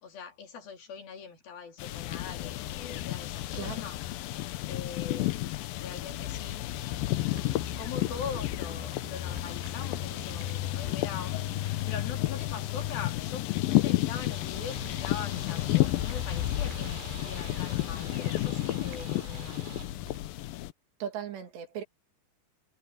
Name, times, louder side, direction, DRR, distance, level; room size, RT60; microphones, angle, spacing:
voice 1, 0.0-4.0 4.7-5.4 5.8-6.7 7.1-19.7, left 6 dB, 55° left, 4.5 m, -42 dB
sound 1, 1.8-20.7, left 16 dB, 85° left, 2.1 m, -31 dB
voice 2, 3.5-3.9 21.0-21.8, right 9 dB, 70° right, 4.4 m, -37 dB
sound 2, 6.8-20.2, right 4 dB, 90° right, 8.8 m, -50 dB
sound 3, 14.3-19.9, right 7 dB, 45° right, 3.4 m, -48 dB
omnidirectional pair, 5.1 m